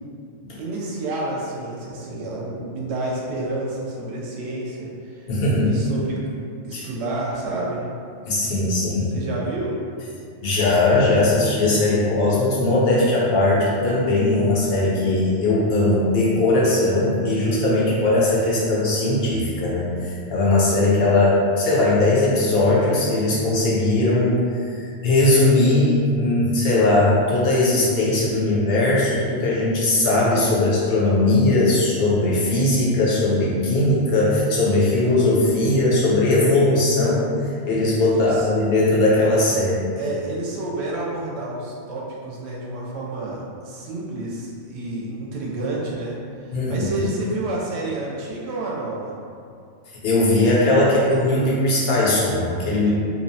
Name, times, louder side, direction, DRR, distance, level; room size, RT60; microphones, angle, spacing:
voice 1, 0.6-5.3 5.6-6.2 6.6-7.8 9.0-9.8 38.1-38.5 40.0-46.2 46.5-49.1 52.6-52.9, right 2 dB, 70° right, -4 dB, 0.8 m, -29 dB
voice 2, 5.3-5.7 6.7-6.8 8.3-9.1 10.4-24.7 25.0-37.3 37.6-39.9 46.5-47.1 50.0-52.9, left 2 dB, 65° left, -6 dB, 0.8 m, -19 dB
2.7 x 2.0 x 2.7 m, 2.4 s
omnidirectional pair, 1.2 m